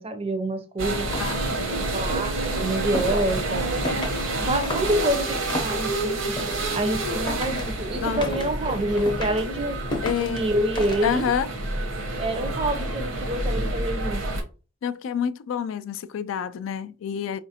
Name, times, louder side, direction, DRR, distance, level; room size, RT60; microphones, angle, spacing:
voice 1, 0.0-1.1 1.9-3.9 4.4-6.4 6.7-9.8 10.2-11.3 12.2-14.4, right 1 dB, 30° right, 0.5 m, -27 dB
sound 1, 0.8-14.4, right 2 dB, 75° right, 0.9 m, -28 dB
sound 2, 0.9-11.4, left 1 dB, 25° left, 0.6 m, -36 dB
voice 2, 1.2-1.9 8.0-8.2 10.0-10.4 11.0-11.5 14.8-17.4, left 7 dB, 75° left, 0.3 m, -28 dB
4.8 x 2.5 x 2.7 m
head